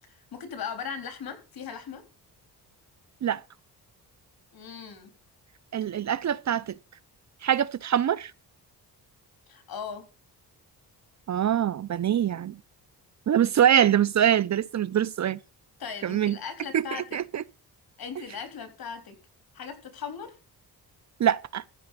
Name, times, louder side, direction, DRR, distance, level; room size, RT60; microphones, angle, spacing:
voice 1, 0.1-2.0 4.5-5.1 5.8-5.9 9.5-10.0 15.8-17.2 18.0-19.2 19.5-20.4, left 6 dB, 65° left, 3.8 m, -38 dB
voice 2, 5.7-6.8 7.4-8.3 11.3-12.6 13.3-15.4 16.0-16.4 16.7-17.4 21.2-21.6, right 10 dB, 45° right, 0.6 m, -24 dB
14.5 x 5.1 x 8.2 m
cardioid pair, 95°, 39 cm